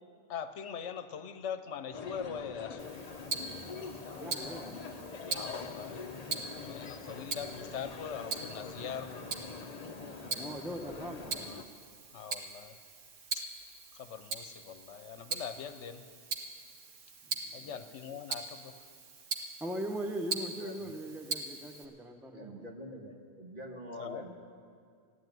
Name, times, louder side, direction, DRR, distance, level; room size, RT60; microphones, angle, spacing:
voice 1, 0.3-2.8 5.3-6.0 6.6-9.4 12.1-12.7 13.3-13.5 13.9-16.1 17.5-18.7 24.0-24.3, left 7 dB, 70° left, 10 dB, 1.0 m, -42 dB
sound 1, 1.9-11.6, left 4 dB, 40° left, 0.7 m, -44 dB
Tick-tock, 2.8-21.8, right 4 dB, 85° right, 1.5 m, -42 dB
voice 2, 4.1-4.8 7.0-7.1 10.3-11.5 17.5-17.7 19.6-22.7, right 1 dB, ahead, 4 dB, 0.8 m, -40 dB
voice 3, 22.3-24.3, equal, 45° right, 1 dB, 1.8 m, -45 dB
14.0 x 9.8 x 9.3 m, 2.2 s
omnidirectional pair, 1.3 m